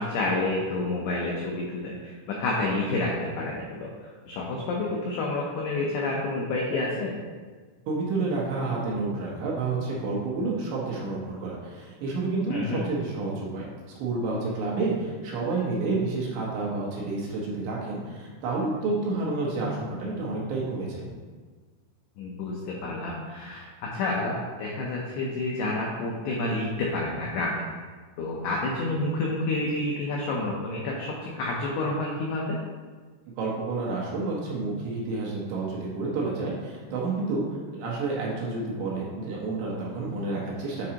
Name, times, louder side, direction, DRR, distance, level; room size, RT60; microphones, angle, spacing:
voice 1, 0.0-7.1 12.5-12.8 22.2-23.7 23.9-27.6 28.2-32.6, left 2 dB, 85° left, -2 dB, 2.3 m, -29 dB
voice 2, 7.9-13.7 14.0-21.1 33.4-40.9, right 3 dB, 75° right, -4 dB, 3.0 m, -29 dB
8.6 x 4.6 x 2.9 m, 1.5 s
omnidirectional pair, 5.6 m